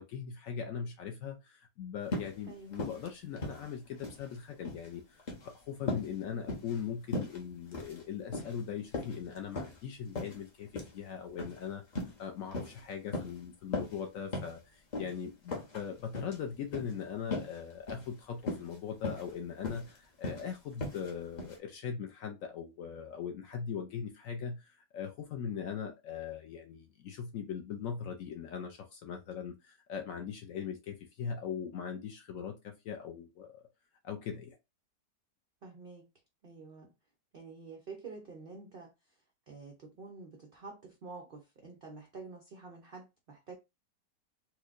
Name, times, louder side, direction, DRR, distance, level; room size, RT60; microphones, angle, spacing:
voice 1, 0.0-11.8 12.2-33.6 34.0-34.6, left 7 dB, 70° left, 0.8 m, -40 dB
sound 1, 2.1-2.4 2.7-3.1 3.4-4.2 4.5-4.9 5.2-5.5 5.9-6.1 6.5-6.8 7.1-7.4 7.7-8.0 8.3-8.6 8.9-9.8 10.2-10.4 10.8-11.0 11.4-11.6 11.9-12.2 12.5-12.8 13.1-13.4 13.7-14.0 14.3-14.6 14.9-15.1 15.5-15.8 16.1-16.4 16.7-16.9 17.3-17.6 17.9-18.1 18.4-18.8 19.0-19.3 19.6-19.9 20.2-20.4 20.8-21.1 21.4-21.6, left 2 dB, 40° left, 0.6 m, -37 dB
voice 2, 2.5-2.8 35.6-36.1 36.4-36.9 37.3-38.9 39.5-43.5, right 4 dB, 85° right, 0.5 m, -48 dB
4.4 x 2.2 x 2.4 m
omnidirectional pair, 1.8 m